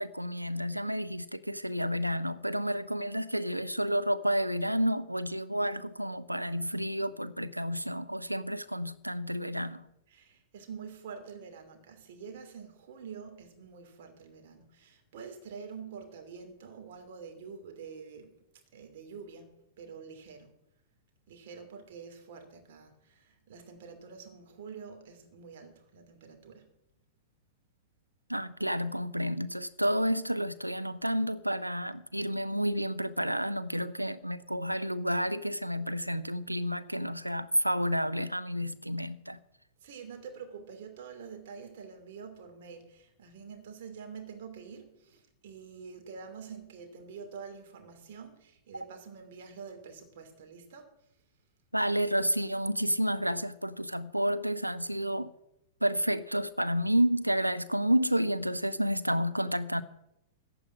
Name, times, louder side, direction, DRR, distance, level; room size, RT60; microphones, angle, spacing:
voice 1, 0.0-9.9 28.3-39.4 51.7-55.3 55.8-59.8, equal, 90° right, 0.6 m, -30 dB
voice 2, 10.1-18.3 18.7-19.5 19.8-20.5 21.3-26.7 39.8-50.9, right 6 dB, 50° right, 2.7 m, -47 dB
15.0 x 5.1 x 9.3 m
figure-of-eight pair, 100°, 0 cm